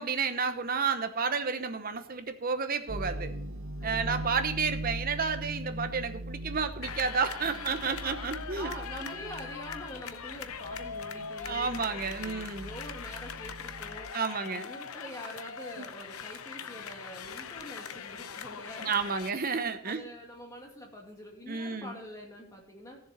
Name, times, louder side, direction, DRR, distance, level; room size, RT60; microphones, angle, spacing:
voice 1, 0.0-3.3 3.8-8.7 11.4-12.7 14.1-14.7 15.8-15.9 18.8-20.0 21.5-22.0, right 5 dB, 40° right, 9 dB, 0.9 m, -31 dB
sound 1, 2.9-14.1, right 1 dB, 75° right, 1.2 m, -41 dB
voice 2, 3.8-4.8 7.4-14.1 14.5-19.4 19.8-23.0, equal, 15° left, 0 dB, 2.3 m, -45 dB
sound 2, 6.8-19.3, left 7 dB, 75° left, 0.7 m, -41 dB
15.5 x 7.2 x 4.3 m, 0.69 s
head